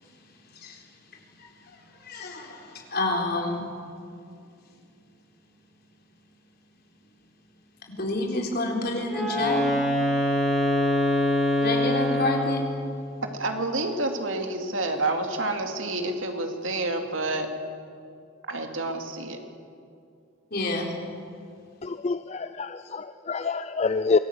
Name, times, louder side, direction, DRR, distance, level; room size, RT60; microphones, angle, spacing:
voice 1, 2.1-2.6 2.9-3.7 8.0-9.7 11.6-12.6 20.5-20.9, left 2 dB, 50° left, 3.9 m, -28 dB
Wind instrument woodwind instrument, 9.1-12.8, left 1 dB, ahead, 6.2 m, -24 dB
voice 2, 13.2-17.5 18.5-19.4, right 2 dB, 80° right, 2.5 m, -29 dB
voice 3, 21.8-24.2, left 4 dB, 35° left, 0.4 m, -27 dB
25.0 x 18.0 x 8.2 m
head